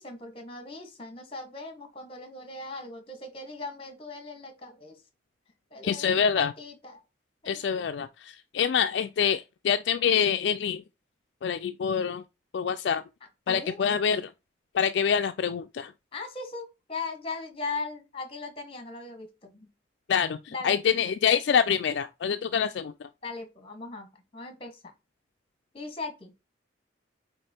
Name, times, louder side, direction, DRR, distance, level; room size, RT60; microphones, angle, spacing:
voice 1, 0.0-5.0 5.7-7.0 7.4-7.6 13.5-13.9 16.1-19.7 20.5-20.8 23.2-24.8 25.7-26.3, left 3 dB, 30° left, 1.3 m, -39 dB
voice 2, 5.8-6.5 7.4-10.8 11.4-12.2 12.5-13.0 13.5-14.3 14.7-15.9 20.1-23.1, left 7 dB, 60° left, 0.3 m, -26 dB
5.2 x 4.1 x 4.3 m
head